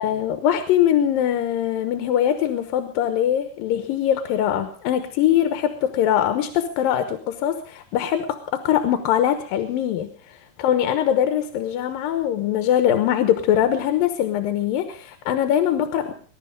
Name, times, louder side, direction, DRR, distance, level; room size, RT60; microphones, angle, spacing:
voice 1, 0.0-16.1, left 10 dB, 90° left, 8 dB, 2.9 m, -22 dB
21.0 x 11.5 x 5.2 m, 0.43 s
omnidirectional pair, 4.0 m